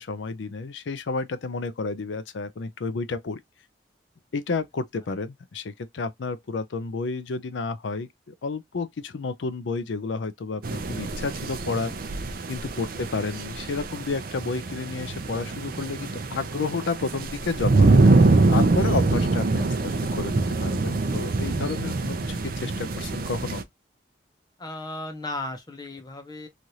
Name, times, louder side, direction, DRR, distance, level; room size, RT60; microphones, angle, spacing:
voice 1, 0.0-3.4 4.3-12.2 12.5-23.6, left 4 dB, 80° left, 0.5 m, -31 dB
sound 1, 10.6-23.6, right 3 dB, 50° right, 0.5 m, -24 dB
voice 2, 12.9-13.3 24.6-26.5, left 2 dB, 20° left, 0.7 m, -36 dB
3.1 x 2.5 x 2.7 m
head